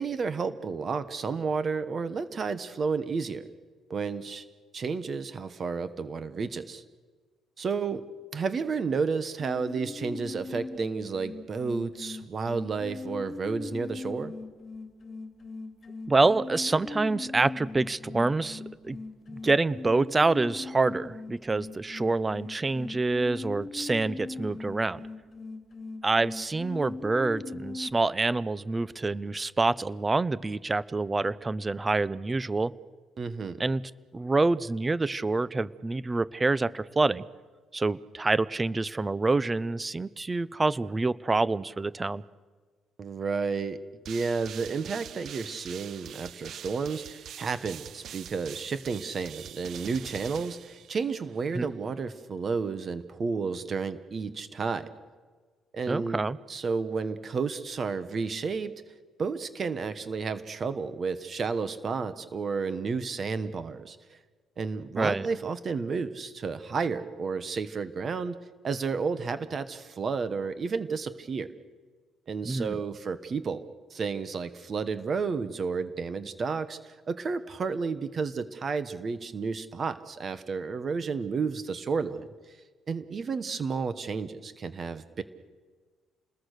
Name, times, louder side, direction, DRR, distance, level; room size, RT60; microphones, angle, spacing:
voice 1, 0.0-3.5 3.9-4.4 4.7-6.8 7.6-8.0 8.3-14.3 33.2-33.6 43.0-43.8 44.1-54.9 55.7-56.2 56.5-58.7 59.2-64.2 64.6-68.4 68.6-71.5 72.3-82.6 82.9-85.2, right 5 dB, 35° right, 12 dB, 1.2 m, -31 dB
sound 1, 9.4-27.9, left 3 dB, 30° left, 2.4 m, -40 dB
voice 2, 16.1-19.0 19.4-25.0 26.0-32.7 33.6-33.8 34.1-37.2 37.7-42.2 51.5-51.7 55.9-56.4 65.0-65.3 72.4-72.8, right 3 dB, 15° right, 19 dB, 0.7 m, -27 dB
sound 2, 44.0-51.3, right 9 dB, 55° right, 0.7 m, -44 dB
28.5 x 21.0 x 6.6 m, 1.4 s
cardioid pair, 140°, 0 cm